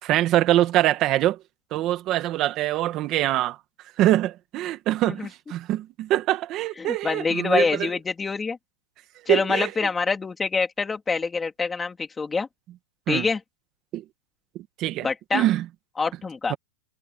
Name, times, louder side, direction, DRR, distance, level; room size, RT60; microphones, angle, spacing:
voice 1, 0.0-1.4 1.7-3.6 3.8-7.9 9.3-9.7 13.1-13.3 13.9-14.0 14.5-15.7 16.5-16.6, right 14 dB, 25° right, 1.5 m, -24 dB
voice 2, 6.8-8.6 9.3-12.5 13.1-13.4 15.0-15.4 16.0-16.5, left 4 dB, 10° left, 3.2 m, -25 dB
supercardioid pair, 170°, 0 cm